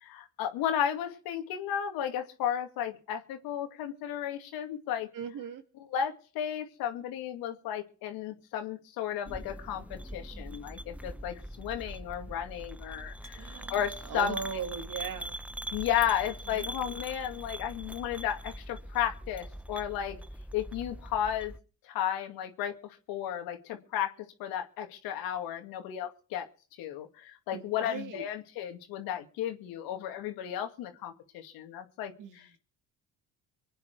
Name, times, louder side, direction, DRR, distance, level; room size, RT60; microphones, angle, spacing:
voice 1, 0.0-5.1 5.9-14.4 15.7-20.2 20.5-21.5 21.8-24.1 24.4-26.5 26.8-32.6, left 10 dB, 85° left, 5 dB, 2.4 m, -34 dB
voice 2, 5.1-5.6 13.4-15.3 16.5-16.7 27.5-28.2 32.2-32.5, right 7 dB, 60° right, 7 dB, 2.3 m, -39 dB
sound 1, 9.3-21.6, right 1 dB, 5° right, 0.8 m, -42 dB
25.0 x 9.4 x 4.7 m, 0.40 s
cardioid pair, 90°, 35 cm